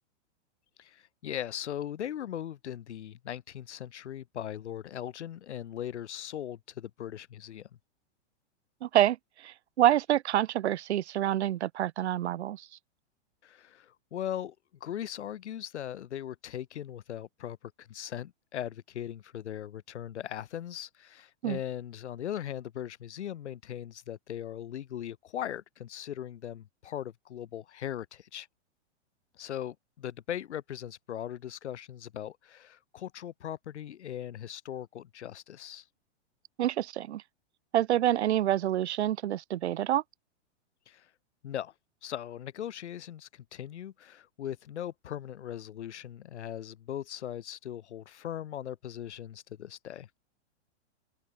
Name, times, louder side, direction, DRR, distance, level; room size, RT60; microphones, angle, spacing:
voice 1, 0.8-7.7 13.4-14.5 14.8-28.5 29.4-35.8 40.9-41.1 41.4-41.7 42.0-50.1, left 10 dB, 75° left, 6.2 m, -39 dB
voice 2, 8.8-9.2 9.4-12.7 21.4-21.6 36.6-37.2 37.7-40.0, right 12 dB, 70° right, 1.3 m, -27 dB
open air
supercardioid pair, 170°, 34 cm